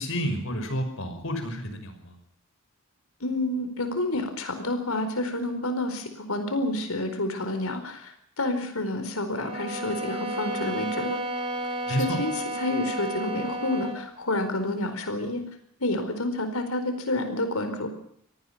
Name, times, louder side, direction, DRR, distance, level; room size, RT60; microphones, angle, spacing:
voice 1, 0.0-2.1 11.9-12.2, equal, 60° left, 7 dB, 5.8 m, -30 dB
voice 2, 3.2-11.2 11.9-15.4 15.8-17.9, left 2 dB, 80° left, 8 dB, 4.6 m, -29 dB
sound 1, 9.3-14.1, right 1 dB, 25° right, 3.5 m, -32 dB
26.0 x 19.0 x 5.8 m, 0.68 s
head